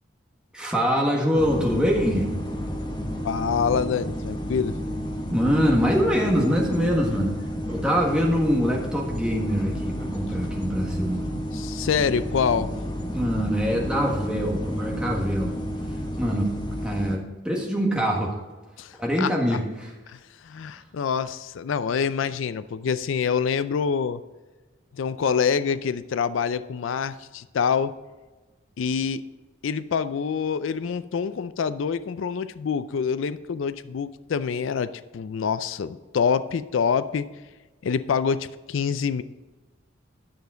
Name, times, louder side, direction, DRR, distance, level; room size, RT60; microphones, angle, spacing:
voice 1, 0.5-2.3 5.3-7.4 7.7-11.4 13.0-15.6 15.9-16.5 16.8-18.4 19.0-19.9, equal, 5° right, -2 dB, 1.6 m, -24 dB
sound 1, 1.3-17.2, equal, 20° left, 1.0 m, -31 dB
voice 2, 3.2-4.8 11.5-12.7 18.8-19.3 20.1-24.2 24.9-27.9 28.8-29.2 29.6-37.3 37.8-39.2, left 6 dB, 80° left, 14 dB, 0.4 m, -26 dB
10.5 x 6.9 x 3.9 m, 1.2 s
head